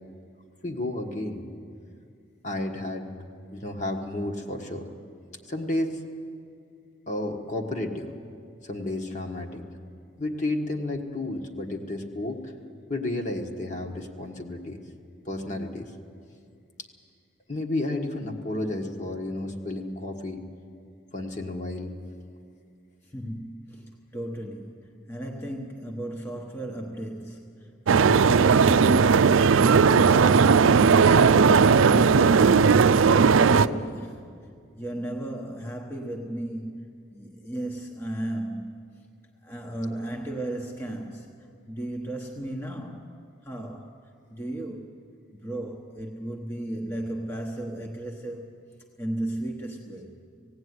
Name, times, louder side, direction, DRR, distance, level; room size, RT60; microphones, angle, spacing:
voice 1, 0.6-1.5 2.4-3.1 3.5-4.9 5.5-6.0 7.1-8.1 8.6-9.6 10.2-12.5 12.9-14.8 15.2-15.9 17.5-20.4 21.1-21.9, left 2 dB, 40° left, 2 dB, 1.5 m, -31 dB
voice 2, 23.0-31.4 33.5-34.2 34.8-38.9 39.4-43.1 43.4-44.0 44.3-44.9 45.3-48.6 49.0-50.2, right 1 dB, 10° left, 0 dB, 1.1 m, -35 dB
sound 1, 27.9-33.7, right 5 dB, 90° right, 0.5 m, -17 dB
17.5 x 17.0 x 9.6 m, 2.3 s
head